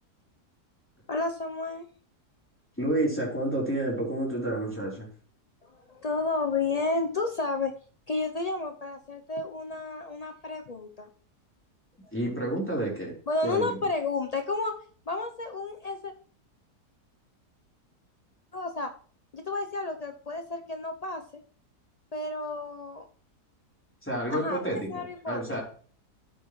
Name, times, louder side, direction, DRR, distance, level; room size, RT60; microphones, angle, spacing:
voice 1, 1.1-1.9 5.7-7.7 8.1-11.1 13.3-14.7 15.1-16.1 18.5-18.9 19.3-21.2 22.1-23.1 24.3-25.6, left 3 dB, 85° left, 5 dB, 0.3 m, -31 dB
voice 2, 2.8-5.1 12.1-13.1 13.4-13.8 24.0-25.6, right 1 dB, 5° left, -4 dB, 3.7 m, -30 dB
12.5 x 8.1 x 3.1 m, 0.44 s
omnidirectional pair, 1.7 m